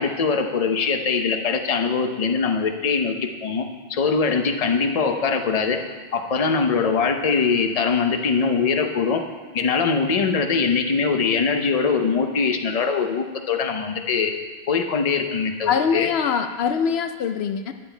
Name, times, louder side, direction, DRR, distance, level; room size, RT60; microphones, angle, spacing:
voice 1, 0.0-3.2 3.4-5.8 6.1-9.2 9.5-14.3 14.7-16.1, left 5 dB, 40° left, 5 dB, 0.8 m, -22 dB
voice 2, 15.7-17.7, left 6 dB, 80° left, 8 dB, 0.9 m, -23 dB
9.8 x 9.2 x 4.4 m, 1.4 s
omnidirectional pair, 1.0 m